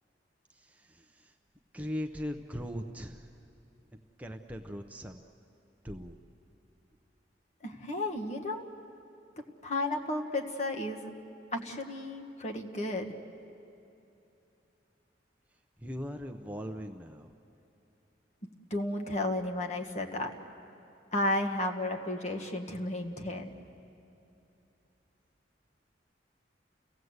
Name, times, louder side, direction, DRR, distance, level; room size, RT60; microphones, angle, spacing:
voice 1, 0.5-1.3 1.7-3.3 4.2-5.2 5.8-6.1 15.8-17.3, equal, 10° right, 4 dB, 0.7 m, -39 dB
voice 2, 7.6-8.6 9.6-11.1 11.5-13.2 18.4-20.3 21.1-23.5, left 1 dB, 40° left, 3 dB, 1.5 m, -33 dB
30.0 x 17.0 x 8.0 m, 2.8 s
head